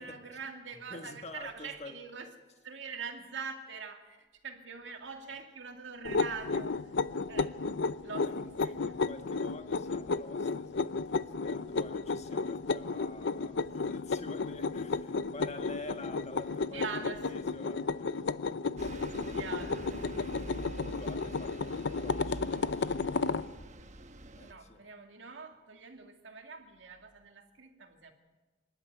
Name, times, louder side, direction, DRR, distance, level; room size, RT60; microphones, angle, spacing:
voice 1, 0.0-2.3 2.6-6.9 7.3-7.7 8.0-9.1 16.7-17.4 19.3-20.1 24.4-28.1, right 5 dB, 85° right, 2.4 m, -44 dB
voice 2, 0.7-1.9 8.0-8.3 8.9-16.8 17.2-18.3 18.8-19.2 20.1-23.0 24.3-24.8, left 2 dB, 40° left, 1.7 m, -48 dB
sound 1, 6.0-23.5, left 4 dB, 70° left, 0.6 m, -33 dB
Bus, 18.8-24.5, right 1 dB, 40° right, 1.1 m, -45 dB
25.0 x 12.0 x 9.4 m
head